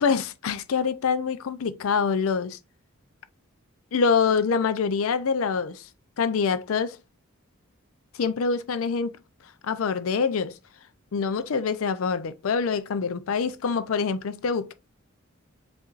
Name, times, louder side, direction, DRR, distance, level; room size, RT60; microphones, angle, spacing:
voice 1, 0.0-2.6 3.9-5.8 6.2-7.0 8.2-9.1 9.6-10.5 11.1-14.7, left 5 dB, 70° left, 0.5 m, -25 dB
7.3 x 2.6 x 2.4 m
head